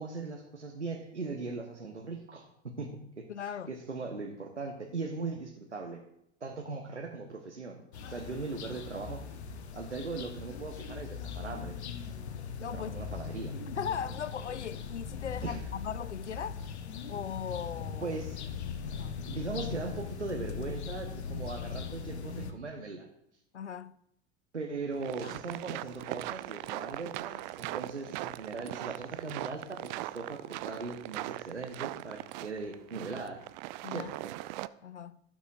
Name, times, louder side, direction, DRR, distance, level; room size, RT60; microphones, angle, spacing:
voice 1, 0.0-6.0 6.4-7.8 8.1-9.2 9.7-11.8 12.7-13.6 15.4-15.6 18.0-18.4 19.3-23.1 24.5-33.4 33.9-34.3, right 3 dB, 90° right, 1.1 m, -39 dB
voice 2, 3.3-3.7 12.6-13.0 13.7-16.6 17.1-18.2 18.9-19.3 23.5-24.0 25.2-25.4 33.8-34.1 34.8-35.2, left 8 dB, 90° left, 0.5 m, -38 dB
sound 1, 7.9-22.5, left 6 dB, 70° left, 1.0 m, -40 dB
sound 2, 24.9-34.7, right 18 dB, 45° right, 0.4 m, -40 dB
17.0 x 7.2 x 2.5 m
figure-of-eight pair, 80°, 34 cm